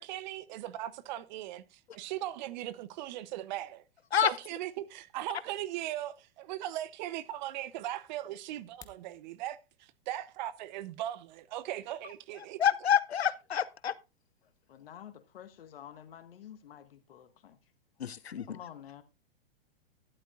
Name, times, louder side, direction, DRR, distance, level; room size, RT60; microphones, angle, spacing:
voice 1, 0.0-3.8 4.2-12.6, right 13 dB, 45° right, 0.8 m, -39 dB
sound 1, 8.6-9.1, left 5 dB, 10° left, 0.8 m, -54 dB
voice 2, 12.6-13.9 18.0-18.5, left 8 dB, 85° left, 0.7 m, -27 dB
voice 3, 14.7-17.6 18.5-19.0, left 10 dB, 65° left, 1.6 m, -49 dB
12.0 x 11.0 x 2.5 m
hypercardioid pair, 115°, 31 cm